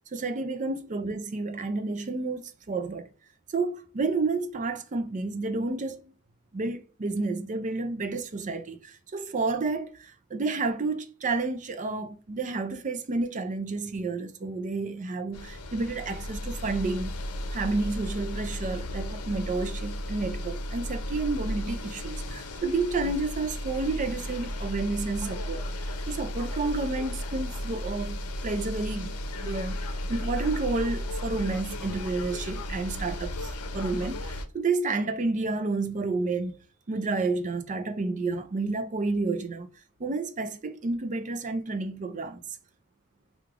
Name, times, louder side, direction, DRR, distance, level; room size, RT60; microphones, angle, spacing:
voice 1, 0.1-3.1 3.5-6.1 6.5-17.1 17.5-25.6 26.1-28.2 28.4-29.8 30.1-36.6 36.9-39.7 40.0-42.4, right 3 dB, 35° right, 0.5 m, -30 dB
sound 1, 15.3-34.4, left 1 dB, 85° left, 0.6 m, -34 dB
3.2 x 2.4 x 3.5 m
head